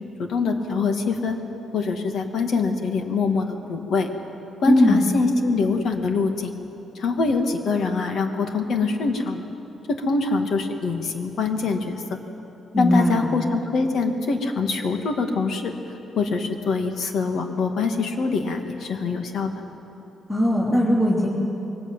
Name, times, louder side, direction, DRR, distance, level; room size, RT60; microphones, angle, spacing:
voice 1, 0.2-1.4 1.7-4.1 4.6-6.5 7.0-9.4 9.9-12.0 12.8-15.7 16.2-19.5, left 4 dB, 65° left, 5 dB, 2.2 m, -24 dB
voice 2, 4.7-5.0 12.7-13.2 20.3-21.3, left 1 dB, 15° left, -7 dB, 3.2 m, -19 dB
22.5 x 19.0 x 9.1 m, 3.0 s
cardioid pair, 135°, 0 cm